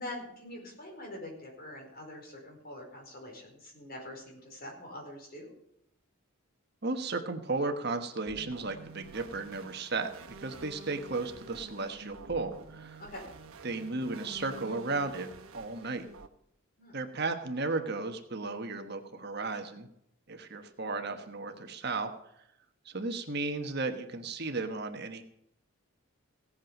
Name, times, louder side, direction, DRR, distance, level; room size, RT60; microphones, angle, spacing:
voice 1, 0.0-5.5 13.0-13.2 16.8-16.9, left 1 dB, 45° left, 0 dB, 4.8 m, -44 dB
voice 2, 6.8-10.1 10.4-13.0 13.6-16.0 16.9-19.9 20.3-22.1 22.8-25.2, right 3 dB, 50° right, 6 dB, 1.3 m, -34 dB
sound 1, 8.3-16.3, right 3 dB, 80° right, 1.4 m, -49 dB
17.0 x 8.7 x 5.3 m, 0.76 s
head